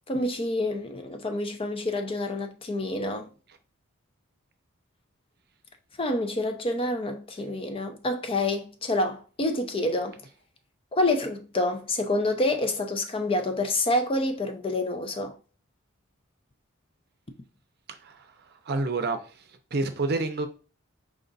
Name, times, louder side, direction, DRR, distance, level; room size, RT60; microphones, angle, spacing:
voice 1, 0.1-3.3 6.0-10.2 10.9-15.3, left 1 dB, 25° left, 0.5 m, -27 dB
voice 2, 18.7-19.2 19.7-20.5, right 3 dB, 50° right, 0.6 m, -27 dB
4.8 x 2.5 x 3.9 m
head